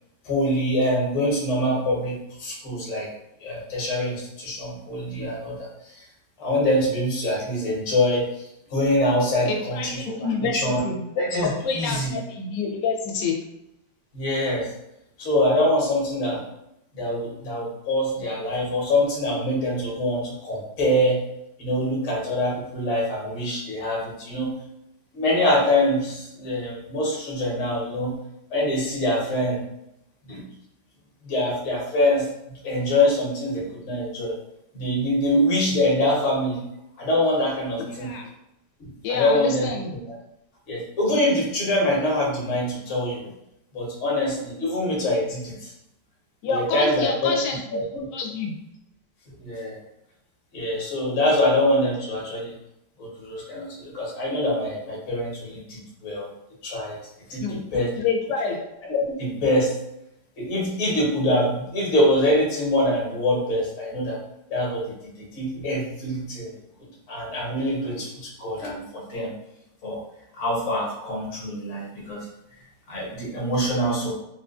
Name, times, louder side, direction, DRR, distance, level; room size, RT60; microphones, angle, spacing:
voice 1, 0.2-3.1 3.4-5.7 6.4-10.0 10.3-10.8 11.2-12.1 14.1-14.7 15.2-16.4 16.9-21.2 21.6-24.5 25.1-28.2 28.5-29.6 30.3-30.4 31.2-32.3 32.6-34.3 34.7-36.6 37.0-38.1 38.8-39.7 40.1-40.2 40.7-43.2 43.7-45.7 46.5-47.4 47.7-48.1 49.4-49.8 50.5-52.5 53.0-56.3 56.6-57.0 57.3-58.0 58.4-58.5 58.9-59.7 60.4-64.2 64.5-66.5 67.1-69.3 69.8-70.0 70.4-72.2 72.9-74.2, left 1 dB, 50° left, -4 dB, 1.2 m, -24 dB
voice 2, 9.5-11.0 11.6-13.4 37.8-38.3 39.0-39.9 46.4-47.8 48.1-48.5 57.4-58.6, left 5 dB, 85° left, 2 dB, 1.2 m, -28 dB
3.8 x 2.3 x 2.4 m, 0.84 s
omnidirectional pair, 1.8 m